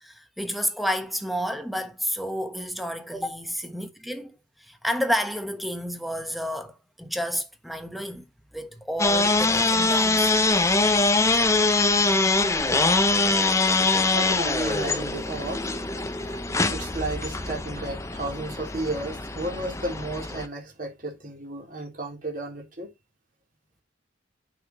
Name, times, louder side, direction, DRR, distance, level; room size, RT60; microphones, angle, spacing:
voice 1, 0.0-8.2 8.5-10.3, equal, ahead, 1.2 m, -30 dB
sound 1, 9.0-20.5, left 3 dB, 15° left, 0.7 m, -23 dB
voice 2, 13.3-22.9, right 2 dB, 45° right, 3.6 m, -34 dB
9.0 x 5.9 x 3.1 m
head